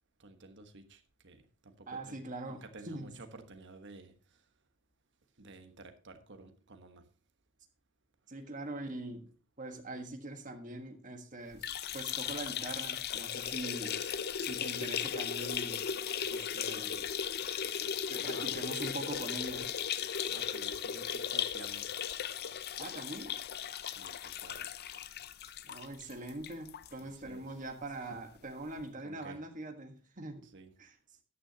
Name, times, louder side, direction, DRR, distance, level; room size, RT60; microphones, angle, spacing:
voice 1, 0.2-4.4 5.4-7.0 18.3-18.5 20.3-21.9 23.8-24.7 27.0-27.6 28.0-28.3 29.0-29.4 30.4-30.7, right 2 dB, 55° right, 1.3 m, -52 dB
voice 2, 1.9-3.1 8.3-9.3 9.6-11.7 11.9-14.1 14.4-15.9 16.3-17.1 18.1-19.7 22.8-23.4 25.6-30.5 30.8-30.9, right 2 dB, 35° right, 1.5 m, -43 dB
sound 1, 11.5-26.9 27.3-27.4 27.7-27.8 28.8-28.9, left 8 dB, 45° left, 0.5 m, -37 dB
13.5 x 9.6 x 2.8 m
head